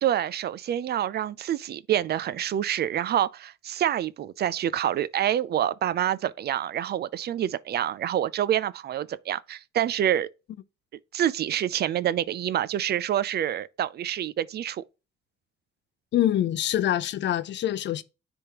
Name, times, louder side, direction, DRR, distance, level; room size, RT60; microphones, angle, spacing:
voice 1, 0.0-10.3 11.1-14.8, right 11 dB, 55° right, 0.4 m, -27 dB
voice 2, 16.1-18.0, left 11 dB, 65° left, 0.6 m, -25 dB
9.9 x 3.5 x 2.9 m
cardioid pair, 90°, 20 cm